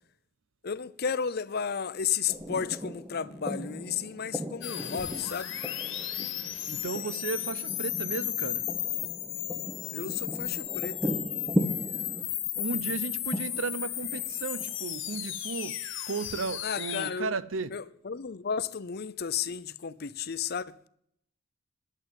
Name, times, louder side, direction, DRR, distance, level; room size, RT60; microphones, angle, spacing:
voice 1, 0.6-5.6 9.9-11.1 16.6-17.3 17.7-20.9, left 7 dB, 55° left, 0.7 m, -33 dB
sound 1, 2.3-15.3, equal, 10° right, 0.9 m, -37 dB
sound 2, 4.6-17.1, left 13 dB, 80° left, 1.7 m, -34 dB
voice 2, 6.7-8.7 12.6-15.8 16.1-17.7, right 4 dB, 80° right, 0.7 m, -34 dB
11.5 x 7.9 x 9.1 m
head